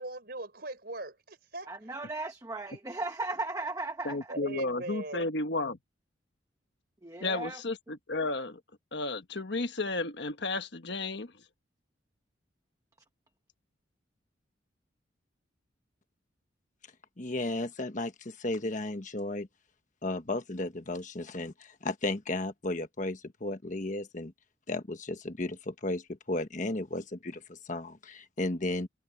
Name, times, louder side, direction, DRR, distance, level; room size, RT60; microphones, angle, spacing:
voice 1, 0.0-1.7 4.3-5.5, right 2 dB, 55° right, 4.8 m, -40 dB
voice 2, 1.7-4.2 7.0-7.6, right 2 dB, 20° right, 1.2 m, -36 dB
voice 3, 4.0-5.8 7.2-8.6 8.9-11.3, left 2 dB, 60° left, 1.4 m, -33 dB
voice 4, 17.2-19.5 20.0-24.3 24.7-28.9, left 2 dB, 40° left, 1.3 m, -34 dB
head